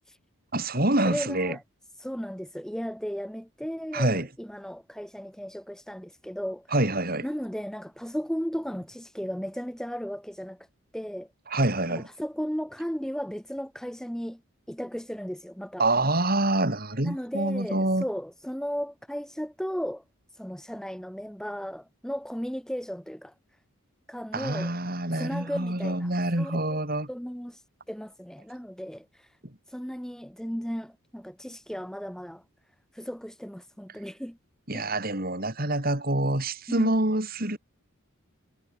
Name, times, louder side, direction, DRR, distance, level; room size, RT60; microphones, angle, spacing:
voice 1, 0.5-1.6 3.9-4.3 6.7-7.3 11.5-12.1 15.8-18.0 24.3-27.1 34.7-37.6, right 1 dB, 40° right, 3.6 m, -26 dB
voice 2, 1.0-1.6 2.0-6.7 7.2-10.7 10.9-11.3 11.9-14.4 14.7-15.9 17.0-20.0 20.3-23.3 24.1-24.7 25.1-26.1 26.4-26.8 27.1-29.3 29.7-32.4 32.9-34.4 34.7-34.9 36.7-36.9, equal, ahead, 1.1 m, -35 dB
head